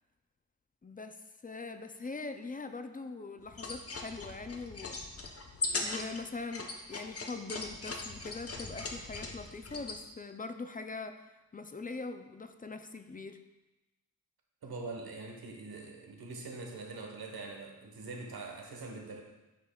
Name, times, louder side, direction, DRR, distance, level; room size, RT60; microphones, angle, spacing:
voice 1, 0.8-5.0 5.7-13.4, left 3 dB, 25° left, 8 dB, 0.4 m, -42 dB
sound 1, 3.5-10.0, left 3 dB, 40° left, 0.8 m, -39 dB
voice 2, 14.6-19.2, right 3 dB, 90° right, 1 dB, 1.1 m, -43 dB
9.1 x 5.3 x 2.3 m, 1.0 s
wide cardioid pair, 100°, 36 cm